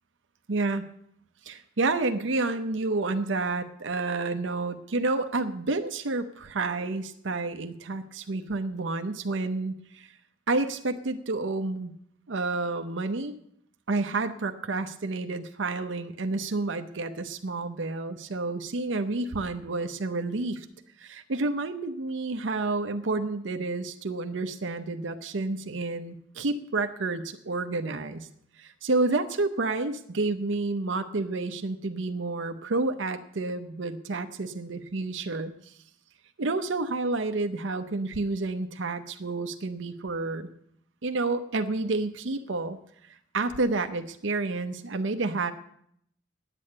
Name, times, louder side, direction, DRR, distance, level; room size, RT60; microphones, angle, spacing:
voice 1, 0.5-0.8 1.5-10.1 10.5-11.9 12.3-13.4 13.9-20.7 21.0-28.3 28.6-35.7 36.4-40.5 41.0-42.8 43.3-45.5, right 3 dB, 75° right, 8 dB, 0.7 m, -30 dB
9.8 x 8.4 x 8.5 m, 0.70 s
head